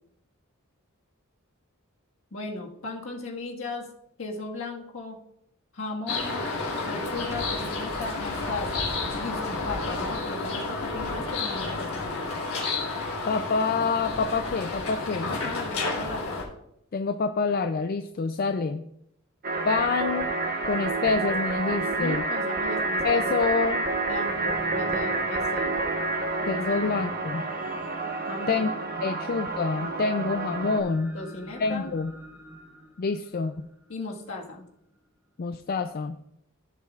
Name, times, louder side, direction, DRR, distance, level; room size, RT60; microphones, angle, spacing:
voice 1, 2.3-3.9 4.2-5.2 5.7-6.4 6.8-12.3 15.3-16.4 21.8-23.4 24.1-25.7 26.7-27.3 28.3-28.7 31.1-31.9 33.9-34.6, left 2 dB, 70° left, 0 dB, 1.7 m, -36 dB
sound 1, 6.1-16.4, left 3 dB, 85° left, 3.3 m, -31 dB
voice 2, 13.3-15.3 16.9-18.9 19.7-20.3 20.6-22.3 23.0-23.8 26.4-27.5 28.5-28.7 29.0-31.2 31.6-32.1 33.0-33.7 35.4-36.2, left 4 dB, 45° left, 8 dB, 0.4 m, -27 dB
sound 2, 19.4-30.8, right 3 dB, 45° right, 1.0 m, -29 dB
sound 3, 24.0-34.3 34.9-35.0, right 1 dB, 5° right, 1.1 m, -46 dB
15.0 x 7.2 x 2.4 m, 0.76 s
head